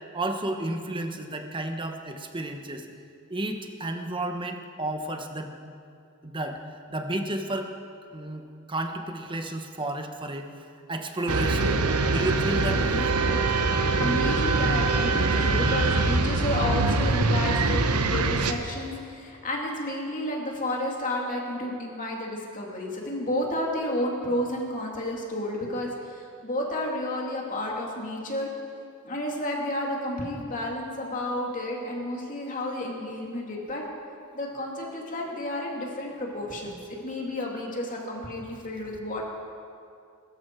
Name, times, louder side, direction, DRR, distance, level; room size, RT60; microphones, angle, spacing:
voice 1, 0.1-2.9 3.3-5.5 6.2-6.6 6.9-7.7 8.1-10.5 10.9-11.7 12.1-13.1, right 1 dB, 20° right, 4 dB, 1.2 m, -32 dB
sound 1, 11.3-18.5, right 3 dB, 85° right, 1.0 m, -23 dB
voice 2, 14.0-28.5 29.0-33.8 34.3-39.2, left 1 dB, 35° left, -1 dB, 2.6 m, -31 dB
22.0 x 13.5 x 4.7 m, 2.4 s
head